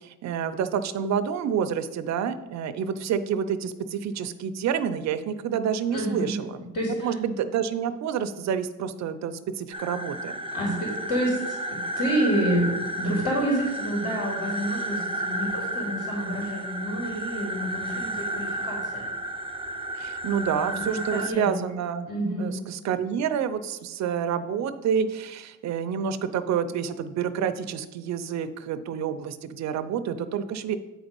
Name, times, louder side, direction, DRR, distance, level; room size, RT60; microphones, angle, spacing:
voice 1, 0.0-6.5 7.0-10.3 20.0-22.1 22.4-30.8, right 8 dB, 65° right, 10 dB, 0.6 m, -28 dB
voice 2, 5.9-6.4 6.7-7.1 10.5-19.1 20.5-21.5 22.1-22.5, right 1 dB, 55° left, -4 dB, 3.0 m, -28 dB
sound 1, 9.7-21.3, right 1 dB, 20° right, 0.6 m, -32 dB
8.7 x 4.0 x 5.2 m, 1.1 s
cardioid pair, 90°, 30 cm